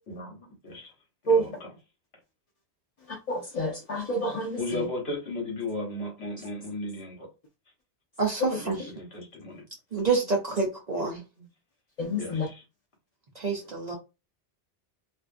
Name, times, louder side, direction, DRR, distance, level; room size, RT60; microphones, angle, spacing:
voice 1, 0.1-0.9 1.3-1.5 4.6-7.3 8.6-9.6 11.4-11.5 12.2-12.4, left 2 dB, 65° left, 1.2 m, -35 dB
voice 2, 3.0-4.9 8.4-8.9 12.0-12.5 13.5-13.7, right 1 dB, 45° left, 0.5 m, -29 dB
voice 3, 9.9-11.2 13.4-13.9, right 4 dB, 45° right, 0.6 m, -27 dB
2.6 x 2.3 x 2.4 m
omnidirectional pair, 1.2 m